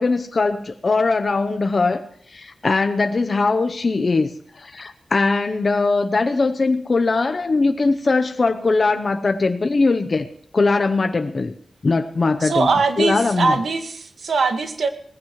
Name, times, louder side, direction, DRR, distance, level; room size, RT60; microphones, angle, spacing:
voice 1, 0.0-2.0 2.3-10.3 10.5-11.5 11.8-12.7 13.0-13.6, left 3 dB, 40° left, 7 dB, 0.8 m, -20 dB
voice 2, 12.4-14.9, right 4 dB, 80° right, 6 dB, 1.8 m, -21 dB
19.5 x 15.5 x 3.2 m, 0.64 s
wide cardioid pair, 175°, 0 cm